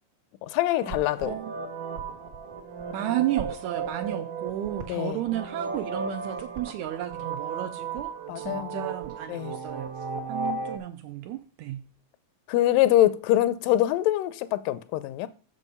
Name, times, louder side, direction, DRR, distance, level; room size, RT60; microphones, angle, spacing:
voice 1, 0.4-1.3 4.9-5.2 8.3-8.9 9.3-9.6 12.5-15.3, left 14 dB, 85° left, 2.2 m, -24 dB
sound 1, 0.8-10.8, right 5 dB, 60° right, 1.2 m, -35 dB
voice 2, 2.9-9.9 10.3-11.9, right 13 dB, 80° right, 1.7 m, -33 dB
6.8 x 6.4 x 5.4 m
omnidirectional pair, 3.8 m